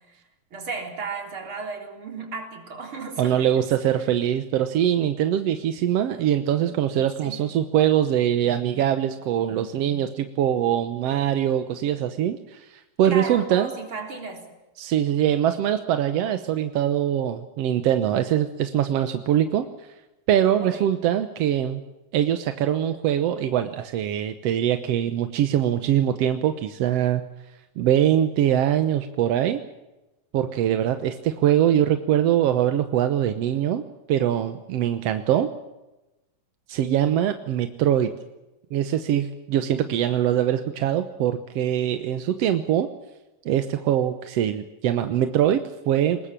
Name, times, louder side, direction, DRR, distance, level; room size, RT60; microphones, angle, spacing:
voice 1, 0.5-3.5 3.9-4.1 7.2-7.4 13.0-14.5 20.6-20.9, right 4 dB, 40° right, 3 dB, 4.4 m, -34 dB
voice 2, 3.2-13.7 14.8-19.7 20.3-21.8 22.1-27.2 27.8-29.6 30.3-35.5 36.7-38.1 38.7-42.9 43.4-46.2, right 10 dB, 65° right, 9 dB, 1.7 m, -23 dB
22.5 x 20.0 x 7.5 m, 1.0 s
omnidirectional pair, 3.8 m